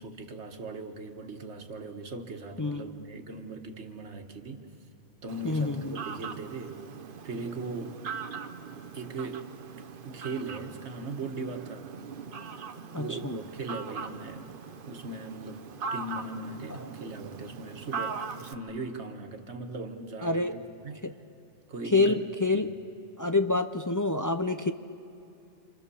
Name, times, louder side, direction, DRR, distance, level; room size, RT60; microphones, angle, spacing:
voice 1, 0.0-4.7 5.2-6.8 7.2-8.0 8.9-9.5 9.8-11.9 13.0-14.5 14.8-21.1 21.7-22.2, right 3 dB, 70° right, 5 dB, 1.8 m, -39 dB
voice 2, 2.6-2.9 5.4-6.0 12.9-13.4 16.7-16.9 18.0-18.2 20.2-20.5 21.0-21.1 21.8-22.8 23.2-24.7, left 3 dB, 25° left, 8 dB, 0.4 m, -27 dB
Fowl, 5.3-18.5, right 5 dB, 50° right, 1.0 m, -41 dB
28.0 x 27.0 x 7.0 m, 2.7 s
omnidirectional pair, 1.2 m